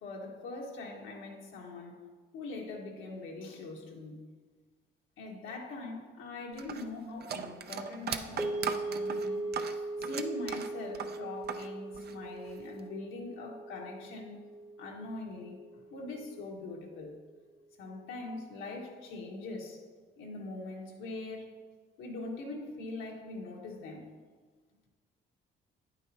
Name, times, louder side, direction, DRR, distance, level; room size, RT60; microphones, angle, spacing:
voice 1, 0.0-2.0 2.3-4.2 5.2-9.4 9.7-14.3 14.8-17.1 17.8-19.8 20.2-21.5 22.0-24.1, left 2 dB, 85° left, -1 dB, 1.7 m, -42 dB
sound 1, 6.6-11.7 11.9-12.8, right 7 dB, 55° right, 0.6 m, -38 dB
sound 2, 8.4-16.7, right 2 dB, 15° right, 0.9 m, -39 dB
9.4 x 8.9 x 2.9 m, 1.4 s
cardioid pair, 90°, 20 cm